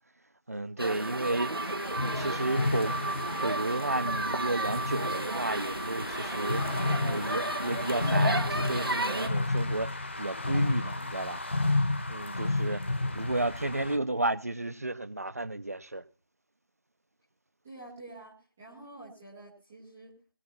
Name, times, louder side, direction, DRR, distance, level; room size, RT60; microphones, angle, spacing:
voice 1, 0.5-1.7 2.0-2.9 3.4-6.7 7.0-11.4 12.1-12.8 13.1-16.0, right 2 dB, 45° right, 1.0 m, -32 dB
sound 1, 0.8-9.3, right 2 dB, 85° right, 1.6 m, -33 dB
sound 2, 1.6-14.0, left 2 dB, 30° left, 1.5 m, -32 dB
voice 2, 17.6-20.1, right 2 dB, 5° right, 0.8 m, -48 dB
21.0 x 10.5 x 4.4 m
figure-of-eight pair, 175°, 12 cm